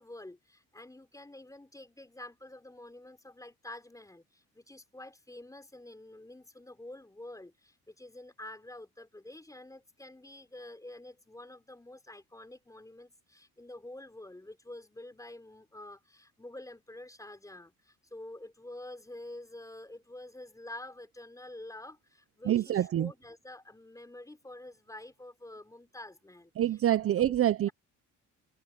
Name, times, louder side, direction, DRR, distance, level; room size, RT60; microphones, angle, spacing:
voice 1, 0.0-26.5 26.9-27.0, left 1 dB, 10° left, 4.3 m, -48 dB
voice 2, 22.5-23.1 26.6-27.7, right 12 dB, 50° right, 0.6 m, -26 dB
cardioid pair, 90°, 30 cm